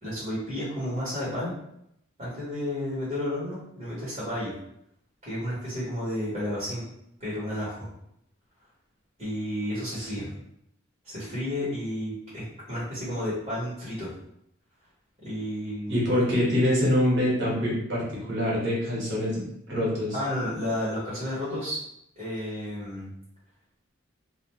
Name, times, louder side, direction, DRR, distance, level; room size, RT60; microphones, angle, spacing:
voice 1, 0.0-1.5 2.2-4.5 5.2-6.8 7.2-7.9 9.2-10.3 11.0-14.1 15.2-16.0 20.1-21.8 22.2-23.1, left 1 dB, 35° right, -9 dB, 1.2 m, -32 dB
voice 2, 15.9-20.2, left 1 dB, 65° right, -5 dB, 1.2 m, -25 dB
2.4 x 2.2 x 3.1 m, 0.75 s
head